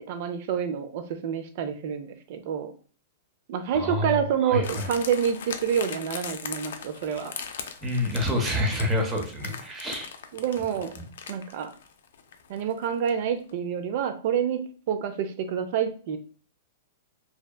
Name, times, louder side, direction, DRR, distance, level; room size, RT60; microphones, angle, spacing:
voice 1, 0.0-2.7 3.5-7.3 10.3-10.9 11.3-11.7 12.5-16.2, right 8 dB, 55° right, 9 dB, 0.4 m, -28 dB
voice 2, 3.7-4.9 7.8-10.1 11.0-11.1, left 1 dB, 15° right, 1 dB, 0.7 m, -28 dB
sound 1, 4.6-13.2 13.5-13.6, left 7 dB, 75° left, 0.3 m, -40 dB
2.7 x 2.1 x 2.2 m, 0.42 s
hypercardioid pair, 125°, 0 cm